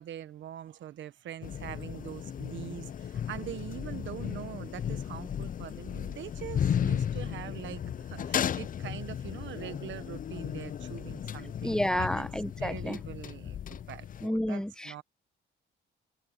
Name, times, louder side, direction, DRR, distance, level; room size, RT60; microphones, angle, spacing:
voice 1, 0.0-12.3 12.6-15.0, right 11 dB, 70° right, 1.3 m, -43 dB
sound 1, 1.4-14.3, left 9 dB, 45° left, 0.6 m, -35 dB
voice 2, 11.6-13.0 14.2-15.0, left 1 dB, 5° left, 0.9 m, -30 dB
cardioid pair, 90°, 20 cm